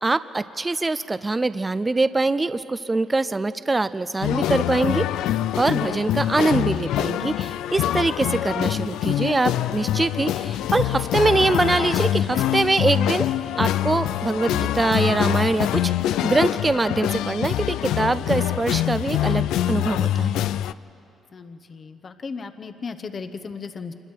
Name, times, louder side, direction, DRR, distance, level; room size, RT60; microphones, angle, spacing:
voice 1, 0.0-5.0 5.6-13.3 13.6-15.9 16.2-20.3, right 3 dB, 20° right, 14 dB, 0.4 m, -23 dB
sound 1, 4.2-20.7, left 12 dB, 90° left, 0.3 m, -24 dB
voice 2, 21.3-23.9, left 5 dB, 45° left, 8 dB, 0.9 m, -36 dB
26.5 x 21.0 x 4.6 m, 2.9 s
cardioid pair, 90°, 0 cm